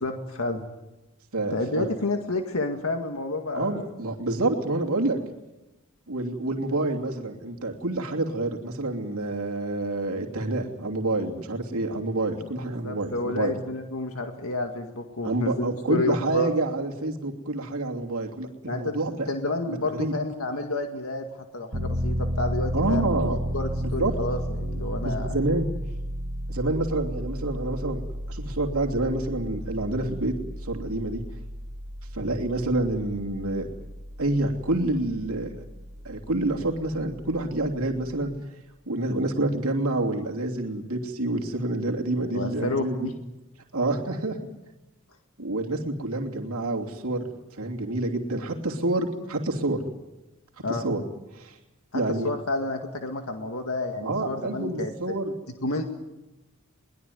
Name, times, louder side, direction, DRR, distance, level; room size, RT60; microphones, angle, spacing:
voice 1, 0.0-0.6 1.5-3.9 12.8-16.5 18.7-19.0 19.3-21.3 21.5-25.4 42.3-43.1 50.6-50.8 51.9-54.9 55.6-55.8, left 2 dB, 70° left, 4 dB, 2.0 m, -30 dB
voice 2, 1.3-1.9 3.5-5.2 6.1-13.5 15.2-19.3 19.7-20.2 22.7-23.4 23.8-24.1 25.0-25.7 26.5-28.0 28.3-30.3 30.6-31.2 32.1-33.7 34.2-35.5 36.0-38.3 38.9-43.1 43.7-44.4 45.4-49.8 50.7-51.0 51.3-51.6 51.9-52.3 54.0-55.3, right 2 dB, 75° right, 1 dB, 3.0 m, -28 dB
Piano, 21.7-38.4, equal, 50° right, 2.1 m, -33 dB
23.0 x 20.5 x 9.5 m, 1.0 s
head